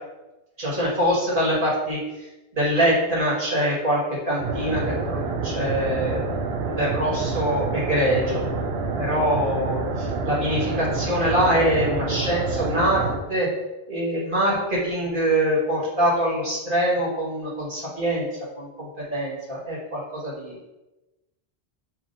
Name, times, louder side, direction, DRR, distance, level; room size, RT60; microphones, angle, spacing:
voice 1, 0.6-2.0 2.5-4.0 4.2-6.2 6.7-8.4 8.9-13.5 13.9-18.3 18.6-20.5, equal, 55° right, -7 dB, 1.9 m, -24 dB
sound 1, 4.4-13.2, right 4 dB, 80° right, 0.8 m, -28 dB
7.2 x 2.8 x 2.6 m, 1.0 s
omnidirectional pair, 1.1 m